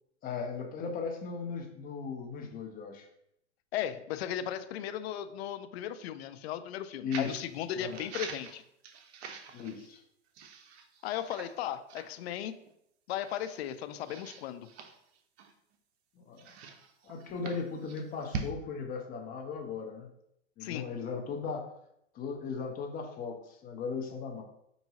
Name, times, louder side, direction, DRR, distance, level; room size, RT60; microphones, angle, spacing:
voice 1, 0.2-3.1 7.0-7.4 7.8-8.0 9.5-10.0 16.2-16.5 17.0-20.1 20.6-21.7 22.1-24.4, left 5 dB, 25° left, 3 dB, 0.6 m, -37 dB
voice 2, 3.7-8.6 11.0-12.6 13.1-14.7 20.6-20.8, left 10 dB, 65° left, 11 dB, 0.5 m, -36 dB
sound 1, 7.1-7.5 7.9-10.0 10.3-11.6 11.9-12.1 12.7-12.8 13.2-13.7 14.0-15.7 16.4-18.5, right 5 dB, 65° right, 0.7 m, -43 dB
4.6 x 2.6 x 2.9 m, 0.75 s
hypercardioid pair, 120°, 36 cm